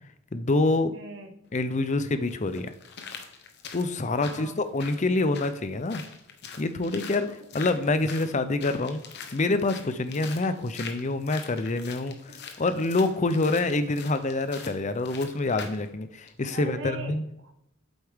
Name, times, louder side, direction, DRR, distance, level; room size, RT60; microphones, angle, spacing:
voice 1, 0.3-0.9 1.5-2.7 3.7-6.0 6.6-7.3 7.5-9.0 9.3-12.2 12.6-17.2, left 2 dB, 35° left, 11 dB, 0.6 m, -26 dB
voice 2, 0.9-1.3 4.1-4.6 7.2-7.3 7.8-8.0 10.1-10.3 12.3-12.5 16.5-17.5, right 3 dB, 65° right, 5 dB, 1.2 m, -42 dB
sound 1, 1.4-1.5 2.3-15.9 16.3-16.4, left 6 dB, 55° left, 1.0 m, -43 dB
8.1 x 8.0 x 3.6 m, 0.79 s
head